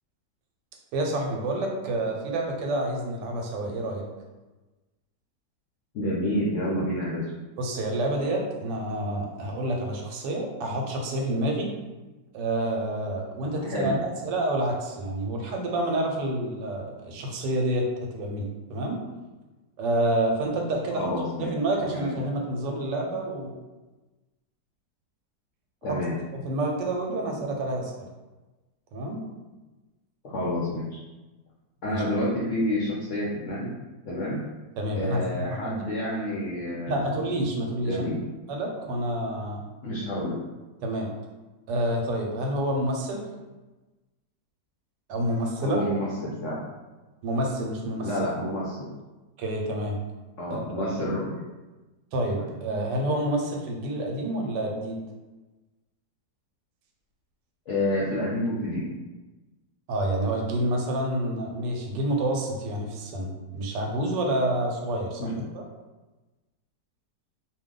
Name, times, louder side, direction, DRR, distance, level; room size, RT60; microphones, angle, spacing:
voice 1, 0.9-4.0 7.6-11.7 12.3-19.0 19.8-21.1 21.4-23.5 25.9-26.0 26.4-27.9 28.9-29.2 31.9-32.0 34.8-35.8 36.9-38.1 38.5-39.6 40.8-41.1 41.7-43.3 45.1-45.8 47.2-48.1 49.4-50.0 50.5-51.1 52.1-55.0 59.9-65.6, right 1 dB, 85° right, 1 dB, 1.2 m, -28 dB
voice 2, 5.9-7.2 13.6-13.9 20.9-21.5 21.8-22.1 25.8-26.1 30.2-31.0 31.8-33.7 34.1-34.4 34.9-37.1 37.8-38.2 39.8-40.4 45.6-46.6 48.0-48.8 50.4-51.5 52.4-52.5 57.7-58.8 65.2-65.5, left 1 dB, 75° left, -6 dB, 0.6 m, -29 dB
2.7 x 2.3 x 3.6 m, 1.2 s
omnidirectional pair, 1.8 m